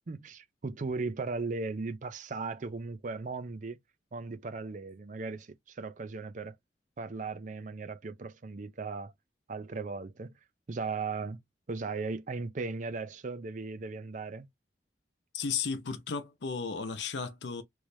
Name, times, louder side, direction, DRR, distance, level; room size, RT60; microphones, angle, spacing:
voice 1, 0.1-3.8 4.1-6.6 7.0-9.1 9.5-10.3 10.7-11.4 11.7-14.5, right 4 dB, 45° right, 0.5 m, -37 dB
voice 2, 15.3-17.6, left 5 dB, 80° left, 0.6 m, -34 dB
3.2 x 3.1 x 2.6 m
head